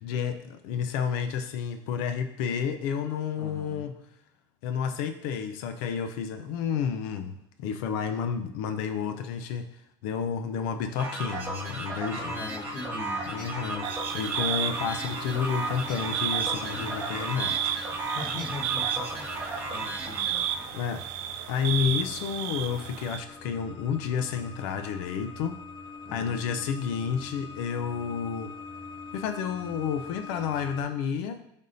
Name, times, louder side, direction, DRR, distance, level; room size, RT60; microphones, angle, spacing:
voice 1, 0.0-3.9 4.6-7.3 7.6-12.3 13.3-17.8 18.0-18.1 20.7-21.0 21.5-25.5 26.1-28.5 29.1-31.4, left 7 dB, 80° left, 8 dB, 0.5 m, -30 dB
voice 2, 3.4-3.9 12.1-13.8 16.6-17.0 18.1-19.3 19.7-20.7 26.0-26.6, left 3 dB, 55° left, -1 dB, 1.3 m, -41 dB
sound 1, 11.0-20.7, right 2 dB, 20° right, 1.8 m, -35 dB
sound 2, 12.2-30.8, left 3 dB, 30° left, 1.8 m, -44 dB
sound 3, 13.8-23.2, right 10 dB, 75° right, 0.4 m, -33 dB
10.5 x 3.6 x 2.7 m, 0.80 s
cardioid pair, 135°, 12 cm